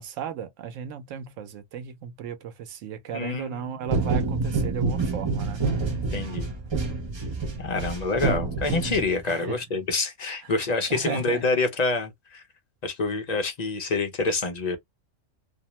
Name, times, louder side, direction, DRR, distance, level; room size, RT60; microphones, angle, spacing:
voice 1, 0.0-5.9 8.2-8.4 9.2-9.6 10.6-10.7 10.9-11.5, right 8 dB, 90° right, 1.0 m, -36 dB
voice 2, 3.1-4.0 6.1-6.5 7.6-12.4 12.8-14.8, left 3 dB, 50° left, 0.5 m, -27 dB
sound 1, 3.9-9.4, right 3 dB, 40° right, 0.4 m, -27 dB
2.6 x 2.0 x 2.9 m
omnidirectional pair, 1.3 m